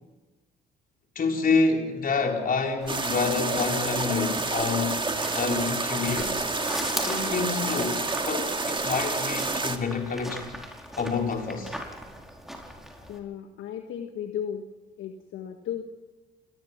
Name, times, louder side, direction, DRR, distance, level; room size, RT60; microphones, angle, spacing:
voice 1, 1.1-5.0 5.3-6.5 7.0-10.5 11.0-11.8, left 4 dB, 45° left, 4.6 m, -28 dB
sound 1, 2.8-13.2, equal, ahead, 4.9 m, -40 dB
sound 2, 2.9-9.8, right 3 dB, 25° right, 2.2 m, -29 dB
voice 2, 13.1-14.7 15.0-15.8, left 9 dB, 70° left, 1.6 m, -35 dB
29.0 x 19.0 x 6.0 m
hypercardioid pair, 60°, 21 cm